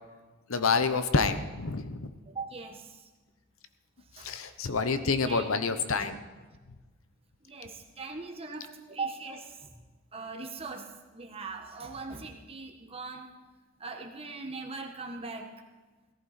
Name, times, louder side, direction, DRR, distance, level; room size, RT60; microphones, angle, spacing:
voice 1, 0.5-2.1 4.2-6.2, left 4 dB, 80° left, 10 dB, 0.9 m, -28 dB
voice 2, 2.3-3.1 4.2-4.3 5.3-5.6 6.0-6.1 7.5-9.8 10.1-13.3 13.8-15.5, right 4 dB, 30° right, 1 dB, 1.5 m, -40 dB
18.0 x 14.5 x 4.4 m, 1.3 s
head